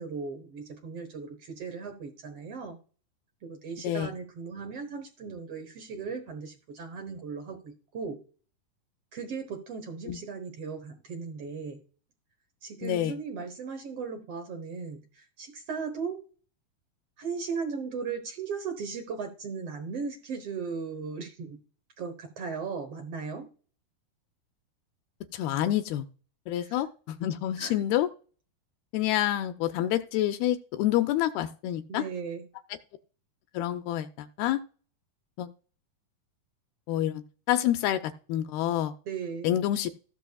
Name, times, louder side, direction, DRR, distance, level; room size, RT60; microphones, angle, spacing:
voice 1, 0.0-2.8 3.4-8.2 9.1-11.8 12.6-16.2 17.2-21.6 22.0-23.5 26.6-26.7 27.6-27.7 31.9-32.4 39.0-39.5, right 5 dB, 80° right, 5 dB, 1.3 m, -37 dB
voice 2, 3.8-4.1 10.1-10.2 12.8-13.2 25.3-26.1 26.5-28.1 28.9-32.1 33.5-34.6 35.4-35.5 36.9-38.9 39.4-39.9, left 12 dB, 80° left, 8 dB, 2.3 m, -28 dB
16.0 x 6.8 x 2.3 m, 0.39 s
omnidirectional pair, 4.7 m